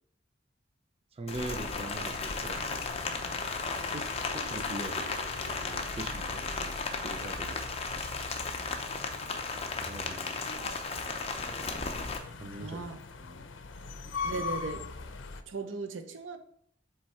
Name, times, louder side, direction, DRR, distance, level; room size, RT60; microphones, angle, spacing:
voice 1, 1.1-2.8 3.9-5.2 5.6-7.6 8.5-8.7 9.8-10.4 12.4-12.9 13.2-13.5 14.2-14.5, right 2 dB, 30° right, 0.5 m, -42 dB
sound 1, 1.3-15.4, left 4 dB, 80° left, 0.6 m, -42 dB
Rain, 1.3-12.2, left 4 dB, 30° left, 0.7 m, -35 dB
voice 2, 12.6-13.0 14.2-14.9 15.5-16.4, right 3 dB, 85° right, 0.7 m, -37 dB
7.8 x 3.3 x 4.2 m
head